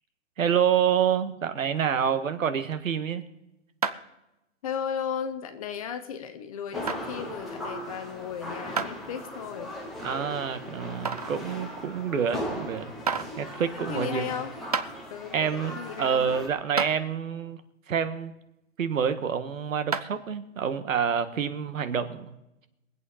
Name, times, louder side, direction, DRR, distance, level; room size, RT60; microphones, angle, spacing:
voice 1, 0.4-3.2 10.0-12.9 13.4-14.3 15.3-17.6 17.9-18.3 18.8-22.3, right 7 dB, 80° right, 10 dB, 1.6 m, -27 dB
sound 1, 3.8-4.2 4.7-4.8 5.6-5.7 6.9-7.0 8.8-8.9 9.5-9.6 11.0-11.4 12.5-12.6 13.1-13.3 14.3-14.4 14.7-14.9 16.2-16.3 16.8-16.9 19.9-20.2, right 5 dB, 30° right, 0.4 m, -29 dB
voice 2, 4.6-9.8 13.9-14.6 15.1-16.3, left 7 dB, 25° left, 8 dB, 0.9 m, -35 dB
sound 2, 6.7-16.5, left 1 dB, ahead, 0.7 m, -38 dB
23.0 x 8.5 x 4.2 m, 0.91 s
hypercardioid pair, 170°, 39 cm